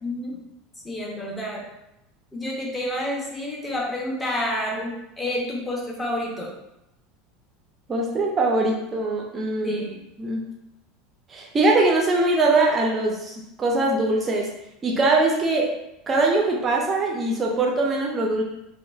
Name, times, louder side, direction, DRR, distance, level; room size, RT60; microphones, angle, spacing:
voice 1, 0.0-0.5 0.8-1.7 2.3-6.6 9.6-10.0, left 1 dB, 15° left, -3 dB, 0.7 m, -29 dB
voice 2, 7.9-9.8 10.2-10.4 11.3-14.5 14.8-15.7 16.1-18.4, right 2 dB, 25° right, -1 dB, 0.4 m, -22 dB
2.9 x 2.1 x 2.3 m, 0.87 s
figure-of-eight pair, 75°, 0 cm